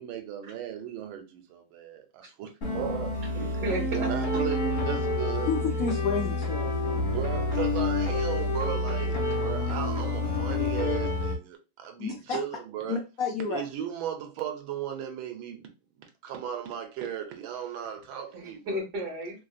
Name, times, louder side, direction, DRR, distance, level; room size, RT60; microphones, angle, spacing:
voice 1, 0.0-3.2 3.8-5.5 7.0-13.0 13.5-15.7 16.0-18.8, right 9 dB, 90° right, 1.5 m, -36 dB
sound 1, 2.6-11.4, left 2 dB, 45° left, 1.7 m, -28 dB
voice 2, 3.3-4.4 9.3-9.4 18.3-19.4, right 1 dB, 60° right, 1.6 m, -34 dB
voice 3, 5.5-7.0 12.0-12.4 12.9-13.6, left 5 dB, 65° left, 0.8 m, -30 dB
3.5 x 2.5 x 2.4 m
omnidirectional pair, 2.1 m